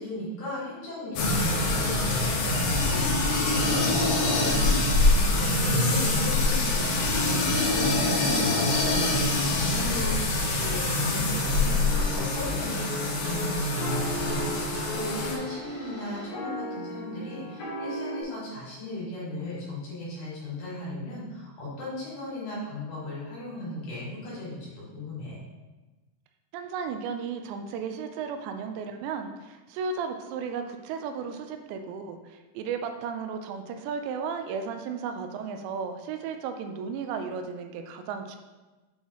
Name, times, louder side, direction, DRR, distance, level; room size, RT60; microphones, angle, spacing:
voice 1, 0.0-25.4, left 1 dB, 65° left, -8 dB, 4.5 m, -36 dB
sound 1, 1.2-15.3, left 2 dB, 85° left, 3.4 m, -25 dB
sound 2, 10.6-16.3, left 1 dB, 45° right, 2.7 m, -41 dB
sound 3, 11.8-18.2, equal, 50° left, 3.1 m, -37 dB
voice 2, 26.5-38.4, right 6 dB, 85° right, 6 dB, 2.8 m, -34 dB
8.7 x 5.4 x 3.1 m, 1.2 s
omnidirectional pair, 5.1 m